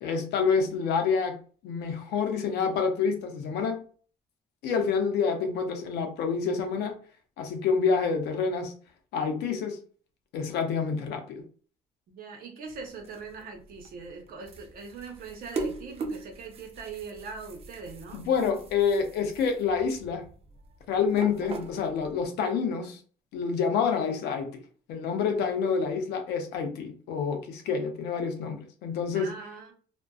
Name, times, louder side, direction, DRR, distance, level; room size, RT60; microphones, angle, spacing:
voice 1, 0.0-1.4 1.6-3.8 4.6-7.0 7.4-8.7 9.1-9.8 10.3-11.4 18.1-20.2 20.9-23.0 23.3-24.6 24.9-29.3, left 5 dB, 80° left, 0.6 m, -28 dB
voice 2, 12.1-18.2 29.1-29.7, right 4 dB, 60° right, 0.8 m, -41 dB
sound 1, 12.7-22.2, right 3 dB, 35° right, 0.4 m, -41 dB
2.5 x 2.2 x 2.3 m
cardioid pair, 110°, 17 cm